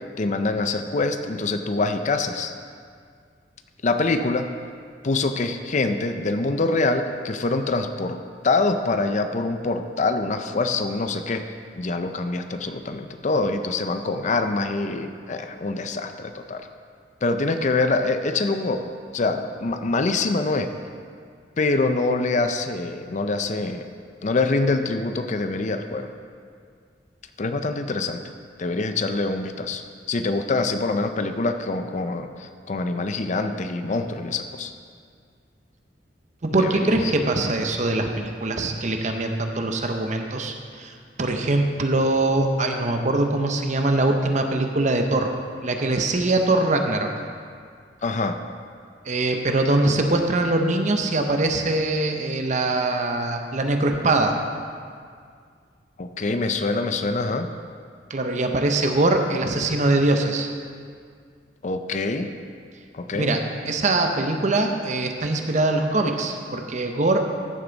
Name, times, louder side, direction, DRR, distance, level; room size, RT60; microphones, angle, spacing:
voice 1, 0.2-2.5 3.8-4.5 5.0-8.2 8.4-11.4 11.8-16.7 17.2-20.7 21.6-23.9 24.2-26.1 27.4-28.2 28.6-29.8 30.1-34.7 36.5-37.1 48.0-48.4 56.0-57.5 61.6-62.3 62.9-63.3, left 3 dB, 40° left, 8 dB, 0.5 m, -25 dB
voice 2, 36.4-45.3 45.6-47.1 49.0-54.3 58.1-60.5 63.1-63.4 63.7-67.2, right 2 dB, 40° right, 4 dB, 0.8 m, -22 dB
14.0 x 6.8 x 4.0 m, 2.1 s
head